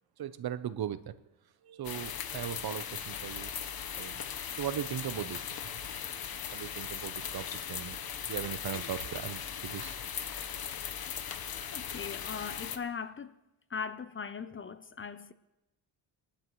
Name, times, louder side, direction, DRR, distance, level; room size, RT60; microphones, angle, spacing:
voice 1, 0.2-1.1 1.6-3.5 3.9-4.2 4.5-5.8 6.5-8.0 8.3-9.9, right 10 dB, 55° right, 0.8 m, -38 dB
sound 1, 1.8-12.8, left 8 dB, 55° left, 1.1 m, -39 dB
voice 2, 11.7-13.4 13.7-15.3, left 6 dB, 30° left, 0.5 m, -39 dB
22.0 x 11.5 x 3.1 m
cardioid pair, 75°, 44 cm